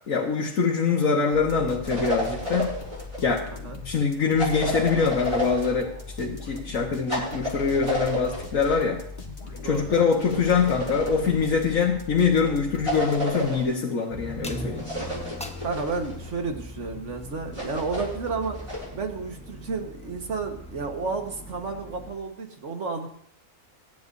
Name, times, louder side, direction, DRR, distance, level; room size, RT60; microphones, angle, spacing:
voice 1, 0.1-2.7 3.2-3.4 3.8-5.9 6.2-9.0 9.6-14.9, left 5 dB, 80° left, -2 dB, 1.8 m, -24 dB
sound 1, 1.3-13.5, left 4 dB, 40° left, 1.8 m, -40 dB
sound 2, 1.8-3.2 4.4-5.8 7.1-8.8 10.2-11.5 12.8-13.7 14.8-16.3 17.5-18.9, equal, 20° right, 5.9 m, -31 dB
voice 2, 3.5-3.8 9.5-10.2 15.6-18.6 18.9-23.1, right 4 dB, 60° right, 4 dB, 1.8 m, -32 dB
sound 3, 14.1-22.2, equal, 5° left, 0.9 m, -40 dB
24.5 x 10.5 x 2.7 m, 0.69 s
omnidirectional pair, 1.4 m